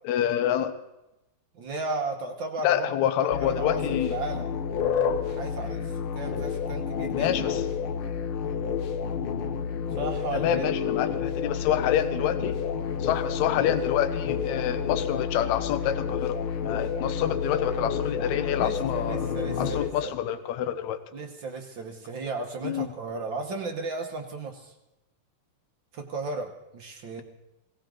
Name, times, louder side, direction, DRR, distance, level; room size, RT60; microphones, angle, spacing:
voice 1, 0.1-0.8 2.6-4.2 7.1-7.6 10.3-12.6 13.0-16.4 16.6-19.2 19.6-21.0 22.6-22.9, left 10 dB, 70° left, 10 dB, 2.1 m, -27 dB
voice 2, 1.5-2.9 3.4-4.5 5.2-7.3 9.9-10.6 18.6-20.1 21.1-24.7 25.9-27.2, right 3 dB, 55° right, 3 dB, 1.4 m, -35 dB
sound 1, 3.3-19.9, left 7 dB, 90° left, 1.1 m, -30 dB
20.0 x 17.5 x 3.8 m, 0.93 s
omnidirectional pair, 3.7 m